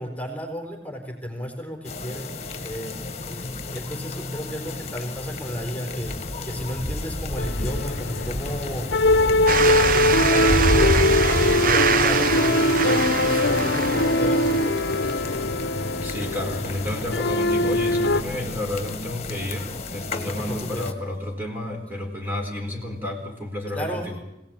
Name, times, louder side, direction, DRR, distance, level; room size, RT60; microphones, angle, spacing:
voice 1, 0.0-2.3 2.6-6.1 6.4-8.9 9.4-11.0 11.3-14.8 20.2-20.9 23.7-24.1, equal, 10° left, 1 dB, 4.1 m, -33 dB
sound 1, 1.8-20.9, left 2 dB, 40° left, 1.8 m, -31 dB
sound 2, 7.4-18.2, left 2 dB, 75° left, 1.0 m, -22 dB
sound 3, 9.5-15.3, right 6 dB, 55° right, 1.1 m, -25 dB
voice 2, 16.0-24.2, left 1 dB, 10° right, 0 dB, 4.1 m, -31 dB
25.0 x 17.5 x 8.9 m, 0.87 s
head